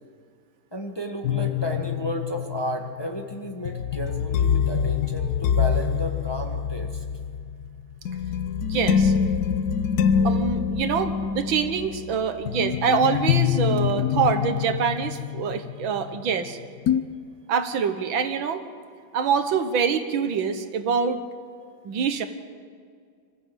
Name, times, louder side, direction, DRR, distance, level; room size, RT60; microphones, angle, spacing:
voice 1, 0.7-7.0, equal, 15° left, 2 dB, 1.3 m, -33 dB
sound 1, 1.2-16.5 16.9-17.0, left 8 dB, 65° left, 1.1 m, -25 dB
voice 2, 8.7-9.1 10.2-16.6 17.5-18.6 19.1-21.2 21.8-22.3, right 6 dB, 90° right, 8 dB, 2.0 m, -25 dB
25.5 x 14.5 x 8.0 m, 2.1 s
omnidirectional pair, 2.1 m